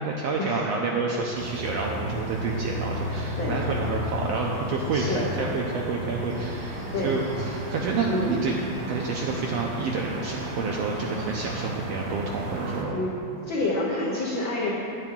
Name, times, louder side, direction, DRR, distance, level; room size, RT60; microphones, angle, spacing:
voice 1, 0.0-8.5 8.9-13.0, right 4 dB, 80° right, -1 dB, 1.5 m, -29 dB
sound 1, 1.3-12.8, equal, 55° right, 1.1 m, -33 dB
voice 2, 3.0-3.9 4.9-5.2 6.9-7.2 8.1-8.4 12.9-13.2 13.4-14.7, left 2 dB, 80° left, -4 dB, 1.1 m, -29 dB
9.3 x 8.9 x 3.7 m, 2.6 s
omnidirectional pair, 3.5 m